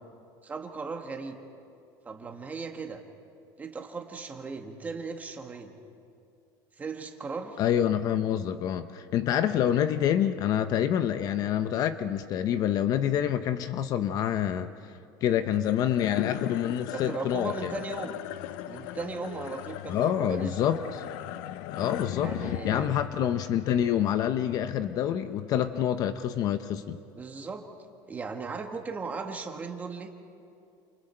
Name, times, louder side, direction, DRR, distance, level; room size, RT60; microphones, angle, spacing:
voice 1, 0.4-1.4 2.0-3.0 3.6-5.7 6.8-7.6 9.7-9.9 16.9-18.2 18.7-20.5 22.2-22.9 27.1-27.6 28.1-30.1, right 4 dB, 15° right, 3 dB, 1.7 m, -37 dB
voice 2, 7.6-17.7 19.9-21.0 21.7-27.0, left 10 dB, 40° left, 10 dB, 0.7 m, -27 dB
sound 1, 15.5-26.0, left 14 dB, 75° left, 0.7 m, -38 dB
28.5 x 28.0 x 4.5 m, 2.5 s
cardioid pair, 160°, 10 cm